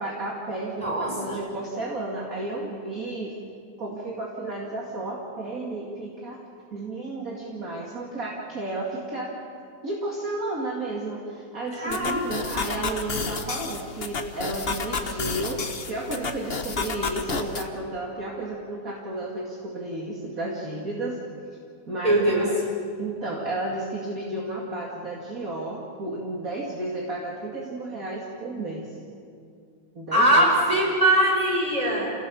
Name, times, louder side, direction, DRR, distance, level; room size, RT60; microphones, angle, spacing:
voice 1, 0.0-3.3 3.8-6.4 6.7-9.4 9.8-21.2 21.9-22.5 23.0-28.9 29.9-30.5, right 2 dB, 40° right, -3 dB, 2.7 m, -32 dB
voice 2, 0.8-1.4 11.8-12.6 22.0-22.5 30.1-32.1, right 1 dB, 15° right, -2 dB, 5.5 m, -22 dB
sound 1, 11.9-17.7, left 4 dB, 35° left, 1.2 m, -31 dB
28.5 x 18.0 x 7.1 m, 2.3 s
omnidirectional pair, 2.2 m